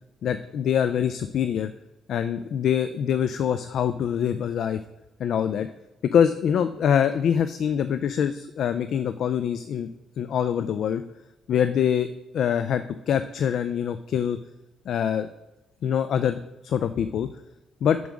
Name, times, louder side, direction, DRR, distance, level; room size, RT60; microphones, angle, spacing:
voice 1, 0.2-1.7 2.1-4.8 5.2-5.7 6.1-9.9 10.2-11.0 11.5-12.1 12.3-14.4 14.9-15.3 15.8-16.4 16.6-17.3 17.8-18.0, left 8 dB, 70° left, 11 dB, 0.3 m, -24 dB
5.4 x 4.6 x 6.2 m, 1.0 s
cardioid pair, 90°, 0 cm